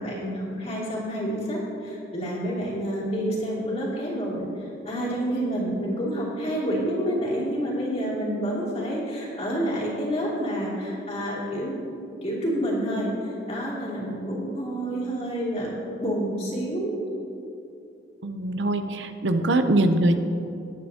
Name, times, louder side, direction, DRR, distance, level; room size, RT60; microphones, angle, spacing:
voice 1, 0.0-4.4 4.8-11.7 12.2-15.7 16.0-17.0, equal, 35° left, -5 dB, 2.8 m, -28 dB
voice 2, 18.2-20.2, right 1 dB, 75° right, 8 dB, 0.7 m, -22 dB
19.0 x 8.8 x 2.9 m, 2.8 s
head